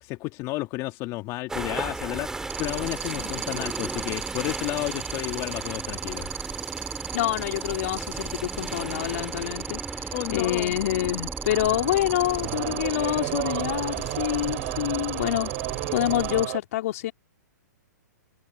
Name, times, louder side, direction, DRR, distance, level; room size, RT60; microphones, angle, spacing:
voice 1, 0.0-6.3 10.1-10.7, left 20 dB, 35° left, 1.8 m, -32 dB
sound 1, 1.5-16.4, right 2 dB, 5° right, 2.1 m, -36 dB
sound 2, 2.5-16.4, right 11 dB, 25° right, 1.6 m, -35 dB
voice 2, 7.1-15.5 15.9-17.1, left 15 dB, 55° left, 3.4 m, -27 dB
sound 3, 11.5-16.6, right 24 dB, 45° right, 5.4 m, -33 dB
hypercardioid pair, 125°, 10 cm